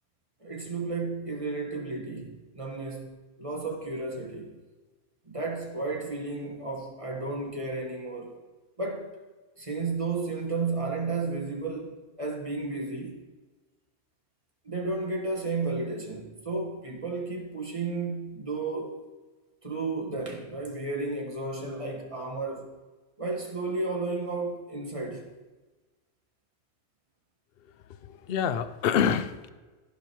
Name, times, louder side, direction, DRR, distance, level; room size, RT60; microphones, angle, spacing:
voice 1, 0.4-4.6 5.2-8.4 8.8-9.2 9.6-13.2 14.6-19.0 19.6-22.7 23.2-25.3, right 3 dB, 25° right, 1.6 m, -33 dB
voice 2, 28.0-29.5, left 8 dB, 55° left, 0.7 m, -27 dB
15.5 x 5.3 x 4.6 m
omnidirectional pair, 1.5 m